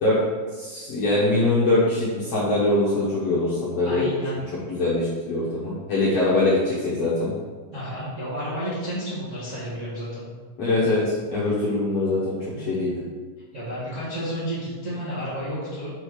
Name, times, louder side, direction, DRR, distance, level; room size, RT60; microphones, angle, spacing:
voice 1, 0.5-4.1 4.7-7.3 10.6-12.3 12.7-13.0, left 2 dB, 65° left, -8 dB, 1.6 m, -22 dB
voice 2, 3.8-4.4 7.7-10.2 12.4-12.7 13.5-15.9, equal, 35° right, -10 dB, 1.1 m, -31 dB
6.5 x 4.5 x 4.8 m, 1.4 s
omnidirectional pair, 4.4 m